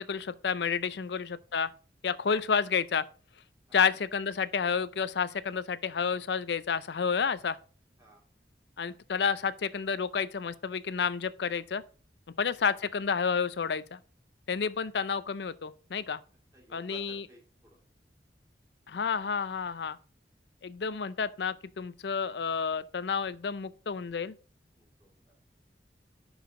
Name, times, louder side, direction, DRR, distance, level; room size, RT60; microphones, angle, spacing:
voice 1, 0.0-1.7 2.0-3.0 3.7-7.6 8.8-11.8 12.4-14.0 14.5-16.2 16.7-17.2 18.9-20.0 20.6-24.3, left 6 dB, 80° left, 0.5 m, -30 dB
voice 2, 16.5-17.8 24.8-25.3, right 3 dB, 15° right, 2.9 m, -56 dB
10.5 x 4.8 x 3.7 m
head